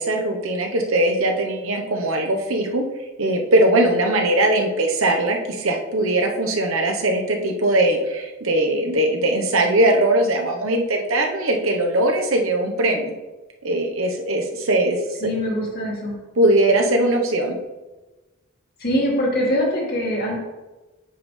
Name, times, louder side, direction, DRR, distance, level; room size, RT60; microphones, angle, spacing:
voice 1, 0.0-2.8 3.2-13.1 13.6-15.0 16.4-17.6, right 1 dB, 75° right, 2 dB, 1.1 m, -20 dB
voice 2, 15.2-16.1 18.8-20.4, equal, 45° left, -2 dB, 2.0 m, -23 dB
9.0 x 5.3 x 3.3 m, 1.1 s
head